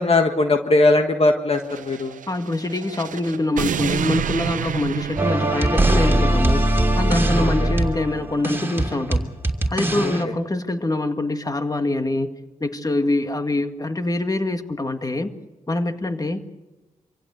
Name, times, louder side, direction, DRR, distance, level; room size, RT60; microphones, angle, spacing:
voice 1, 0.0-2.2 7.4-7.8 10.0-10.1, left 2 dB, 45° left, 5 dB, 1.5 m, -19 dB
sound 1, 1.6-6.4, right 8 dB, 80° right, 0.7 m, -29 dB
voice 2, 2.3-6.6 7.0-9.3 9.7-12.3 12.6-15.3 15.7-16.4, left 2 dB, 30° left, 7 dB, 2.0 m, -24 dB
sound 2, 5.2-10.2, right 1 dB, 15° right, 2.9 m, -20 dB
25.5 x 16.0 x 8.1 m, 1.2 s
cardioid pair, 55°, 13 cm